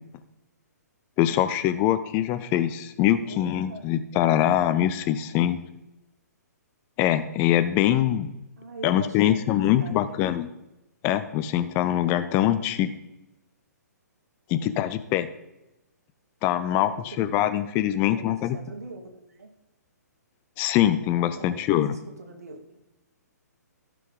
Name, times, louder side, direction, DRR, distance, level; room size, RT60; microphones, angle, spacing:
voice 1, 1.2-5.6 7.0-8.3 8.8-10.5 11.0-12.9 14.5-15.3 16.4-18.6 20.6-22.0, left 12 dB, 20° left, 11 dB, 0.4 m, -23 dB
voice 2, 3.2-3.9 8.6-10.4 16.6-17.3 18.1-19.5 21.4-21.9 22.2-22.6, right 3 dB, 60° right, 4 dB, 2.0 m, -42 dB
15.0 x 5.9 x 3.9 m, 0.94 s
figure-of-eight pair, 125°, 9 cm